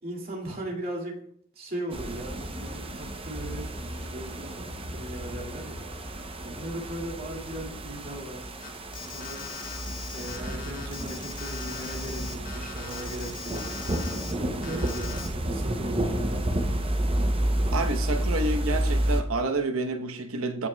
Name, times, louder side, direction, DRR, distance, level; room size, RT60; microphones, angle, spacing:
voice 1, 0.0-1.3 1.5-5.9 6.4-8.5 9.1-9.5 10.1-13.6 14.4-16.5, right 1 dB, 45° right, 2.2 m, -38 dB
sound 1, 1.9-19.2, right 1 dB, 25° right, 0.7 m, -31 dB
Alarm, 8.6-14.3 14.6-15.3, left 7 dB, 40° left, 0.8 m, -40 dB
voice 2, 17.7-20.7, right 2 dB, 80° right, 1.0 m, -29 dB
16.0 x 5.9 x 2.3 m
head